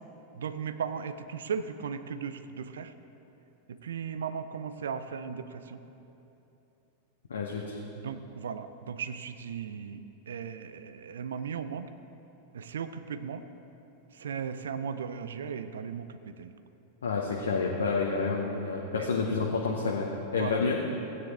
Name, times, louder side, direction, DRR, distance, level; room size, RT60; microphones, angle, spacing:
voice 1, 0.4-2.9 3.7-5.8 8.0-10.0 10.3-11.9 12.5-13.4 14.2-16.5 19.0-19.1 20.4-20.6, right 7 dB, 65° right, 11 dB, 0.5 m, -36 dB
voice 2, 7.3-7.8 17.0-20.1 20.3-20.8, left 4 dB, 70° left, -1 dB, 0.9 m, -29 dB
16.5 x 9.3 x 3.5 m, 3.0 s
figure-of-eight pair, 90°, 0 cm